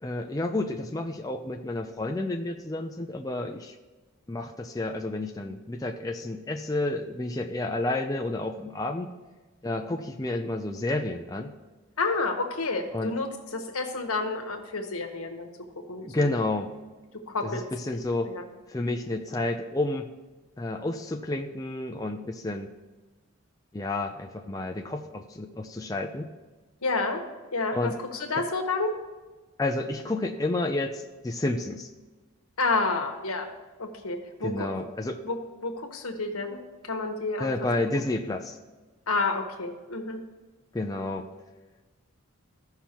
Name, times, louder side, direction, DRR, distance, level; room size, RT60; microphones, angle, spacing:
voice 1, 0.0-3.7 4.3-9.1 9.6-11.5 12.9-13.2 16.0-16.7 17.4-18.3 18.7-20.1 20.6-22.7 23.7-26.3 27.7-28.0 28.4-28.5 29.6-31.9 34.4-35.2 37.4-38.6 40.7-41.3, left 2 dB, 15° left, 3 dB, 0.4 m, -30 dB
voice 2, 12.0-15.5 15.9-16.1 17.3-17.7 18.2-18.5 26.8-27.2 27.5-28.9 32.6-33.5 33.8-34.9 35.2-35.4 35.6-36.6 36.8-37.5 37.9-38.0 39.1-40.2, left 3 dB, 85° left, 4 dB, 1.3 m, -29 dB
14.5 x 5.7 x 3.0 m, 1.3 s
head